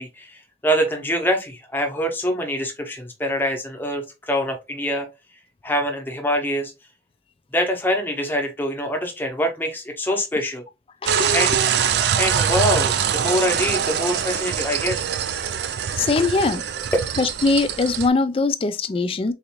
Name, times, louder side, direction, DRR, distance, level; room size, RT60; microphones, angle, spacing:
voice 1, 0.0-5.1 5.6-6.7 7.5-10.6 11.3-11.5 12.2-15.0, equal, 10° left, 0.8 m, -24 dB
sound 1, 11.1-18.1, right 8 dB, 65° right, 0.3 m, -23 dB
voice 2, 16.0-16.6 17.2-19.3, left 3 dB, 30° left, 0.3 m, -21 dB
3.9 x 2.5 x 2.9 m
head